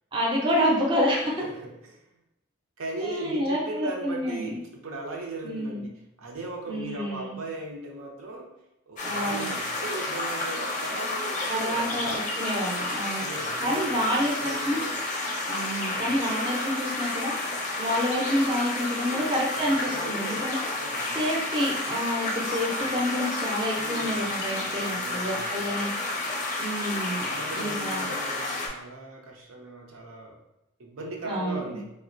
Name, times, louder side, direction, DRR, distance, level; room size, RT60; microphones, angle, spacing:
voice 1, 0.1-1.3 3.0-4.5 5.4-5.9 6.7-7.4 9.0-9.5 11.5-13.2 13.6-14.8 15.5-17.3 17.8-20.6 21.1-25.9 26.6-27.2 27.5-28.1 31.2-31.6, equal, 25° right, -4 dB, 0.5 m, -28 dB
voice 2, 1.4-2.1 2.8-8.5 8.9-12.0 13.2-14.8 15.9-16.2 18.9-21.2 23.7-24.3 24.6-25.9 27.2-30.4 30.8-31.9, right 2 dB, 85° right, 0 dB, 0.6 m, -38 dB
sound 1, 9.0-28.7, left 2 dB, 35° left, 0.5 m, -31 dB
3.5 x 2.1 x 2.5 m, 0.86 s
head